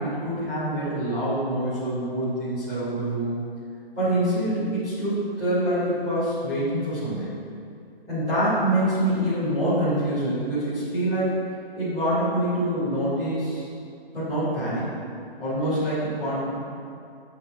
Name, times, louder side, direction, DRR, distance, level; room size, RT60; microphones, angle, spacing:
voice 1, 0.0-3.4 3.9-7.3 8.1-11.3 11.7-13.7 14.1-14.9 15.4-16.5, right 1 dB, ahead, -23 dB, 0.6 m, -25 dB
17.5 x 8.0 x 2.4 m, 2.4 s
hypercardioid pair, 175°, 31 cm